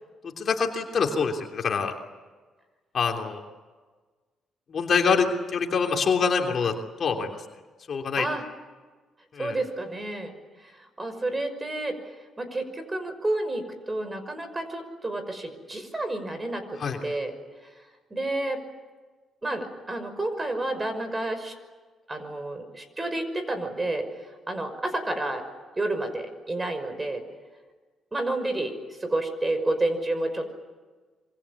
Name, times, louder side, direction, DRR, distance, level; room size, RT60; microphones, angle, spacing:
voice 1, 0.2-1.9 2.9-3.4 4.7-6.7 7.0-7.4 7.9-8.3 9.3-9.6 16.8-17.0, left 5 dB, 50° left, 2 dB, 3.1 m, -25 dB
voice 2, 9.4-10.3 10.7-12.0 12.4-17.3 18.1-18.6 19.4-21.5 22.1-24.1 24.5-25.4 25.8-27.2 28.1-30.5, right 2 dB, 20° right, 9 dB, 5.8 m, -30 dB
27.0 x 24.5 x 8.5 m, 1.4 s
cardioid pair, 90°, 0 cm